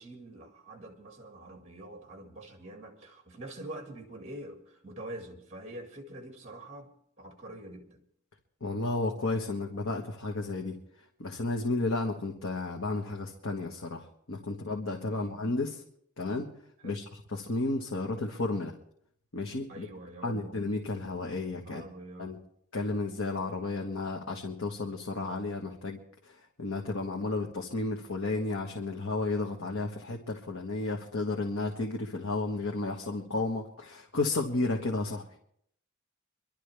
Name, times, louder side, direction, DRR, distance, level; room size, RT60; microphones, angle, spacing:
voice 1, 0.0-6.9 7.2-8.0 14.5-14.6 15.1-15.4 16.8-17.1 19.7-20.7 21.7-22.4, right 1 dB, 30° right, 2.0 m, -45 dB
voice 2, 8.6-10.7 11.2-15.8 16.2-16.5 16.8-17.0 17.3-18.7 19.3-19.9 20.2-21.8 22.2-22.4 22.7-35.4, left 2 dB, 80° left, 1.4 m, -32 dB
25.0 x 12.0 x 3.4 m
head